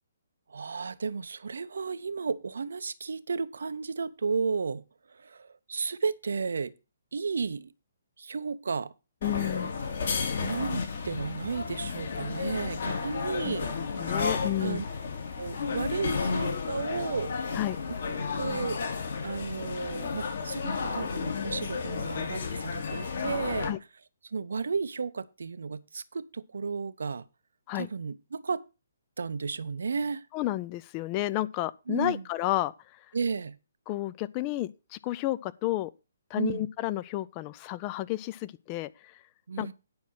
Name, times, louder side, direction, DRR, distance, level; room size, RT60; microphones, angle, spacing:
voice 1, 0.5-6.7 7.1-7.7 8.2-8.9 10.4-13.7 14.6-14.8 15.4-17.3 18.3-18.8 19.2-23.7 24.2-27.3 27.7-28.6 29.2-30.3 31.9-32.2 33.1-33.6 36.3-36.7 39.5-39.7, right 5 dB, 60° right, 0.7 m, -33 dB
sound 1, 9.2-23.7, left 5 dB, 50° left, 2.6 m, -32 dB
voice 2, 9.2-9.7 13.4-13.6 14.0-14.8 17.5-17.8 23.6-23.8 27.7-27.9 30.3-32.7 33.9-35.9 36.3-39.1 39.6-39.7, left 16 dB, 25° left, 0.4 m, -31 dB
9.6 x 6.2 x 5.8 m
figure-of-eight pair, 130°, 0 cm